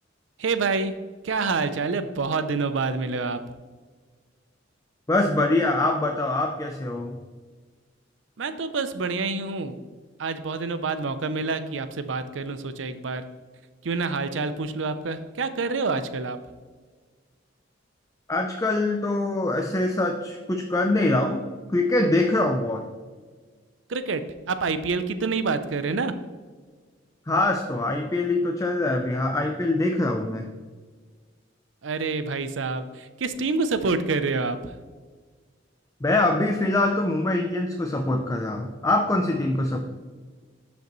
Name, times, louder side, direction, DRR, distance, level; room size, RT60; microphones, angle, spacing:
voice 1, 0.4-0.9 1.2-3.4 8.4-9.8 10.2-13.2 13.8-16.4 23.9-24.2 24.5-26.1 31.8-34.8, right 4 dB, 80° right, 11 dB, 0.6 m, -27 dB
voice 2, 5.1-7.2 18.3-21.4 21.7-22.9 27.3-30.5 36.0-39.9, left 2 dB, 15° left, 4 dB, 0.5 m, -24 dB
12.0 x 5.1 x 3.1 m, 1.5 s
head